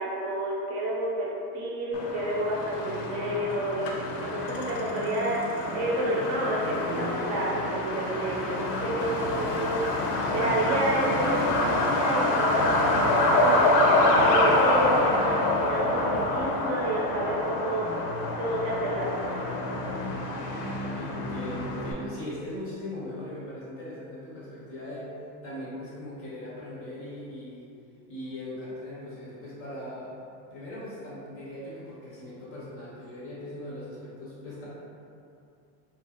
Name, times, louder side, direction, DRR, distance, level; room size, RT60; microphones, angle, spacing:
voice 1, 0.0-8.5 8.8-9.9 10.3-17.9 18.4-19.6, right 1 dB, 45° right, -4 dB, 0.6 m, -30 dB
Truck, 1.9-21.9, left 2 dB, 75° left, 0.6 m, -26 dB
voice 2, 20.9-25.1 25.4-27.7 28.1-30.1 30.5-34.7, left 1 dB, 30° left, -8 dB, 0.5 m, -39 dB
2.7 x 2.4 x 2.8 m, 2.6 s
supercardioid pair, 140°, 50 cm